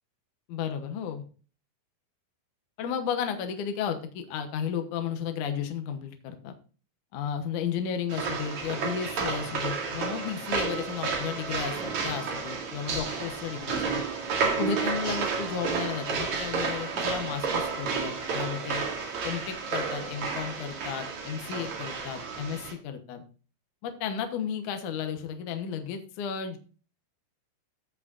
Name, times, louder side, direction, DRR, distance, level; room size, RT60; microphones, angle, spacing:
voice 1, 0.5-1.2 2.8-6.5 7.1-14.0 14.6-18.8 19.2-23.2 23.8-26.6, left 7 dB, 70° left, 6 dB, 1.9 m, -33 dB
sound 1, 8.1-22.7, right 5 dB, 50° right, 3.0 m, -31 dB
16.0 x 6.1 x 2.5 m, 0.37 s
omnidirectional pair, 5.0 m